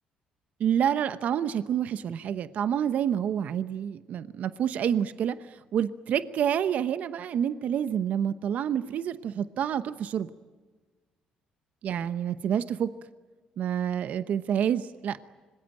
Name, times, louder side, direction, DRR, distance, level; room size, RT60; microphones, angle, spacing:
voice 1, 0.6-10.3 11.8-12.9 13.6-15.2, right 9 dB, 65° right, 12 dB, 0.9 m, -28 dB
26.0 x 20.5 x 9.1 m, 1.4 s
supercardioid pair, 75°, 3 cm